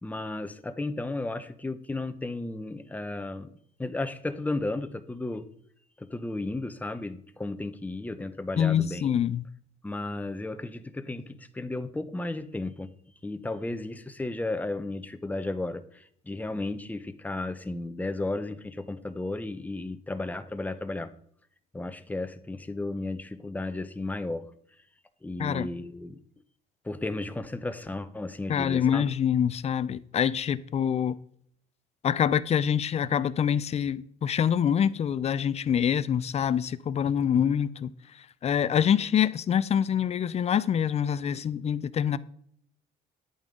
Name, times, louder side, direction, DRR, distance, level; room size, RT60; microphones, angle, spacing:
voice 1, 0.0-3.5 3.8-5.5 6.0-9.2 9.8-12.9 13.2-21.1 21.7-24.4 25.2-26.2 26.8-29.0, left 2 dB, 10° left, 0.8 m, -34 dB
voice 2, 8.6-9.4 25.4-25.7 28.5-31.2 32.0-37.9 38.4-42.2, left 8 dB, 40° left, 0.6 m, -25 dB
10.5 x 8.9 x 3.8 m
cardioid pair, 110°, 17 cm